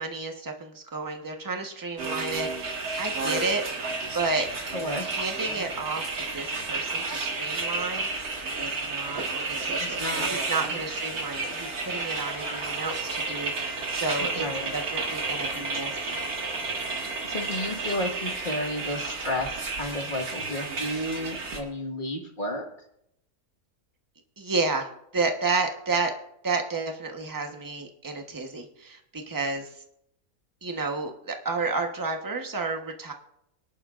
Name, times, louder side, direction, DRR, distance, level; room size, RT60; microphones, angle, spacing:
voice 1, 0.0-3.6 4.1-4.7 5.0-8.1 8.6-9.2 9.6-10.0 10.3-14.5 14.7-16.2 24.4-26.1 26.4-29.7 30.6-33.1, right 3 dB, 15° right, 3 dB, 1.1 m, -31 dB
sound 1, 2.0-21.6, right 3 dB, 75° right, 2.3 m, -31 dB
voice 2, 4.7-5.0 9.8-10.3 10.7-10.8 14.2-14.7 17.2-22.7, left 1 dB, 35° left, 2 dB, 1.8 m, -32 dB
24.5 x 11.0 x 2.5 m, 0.77 s
omnidirectional pair, 1.6 m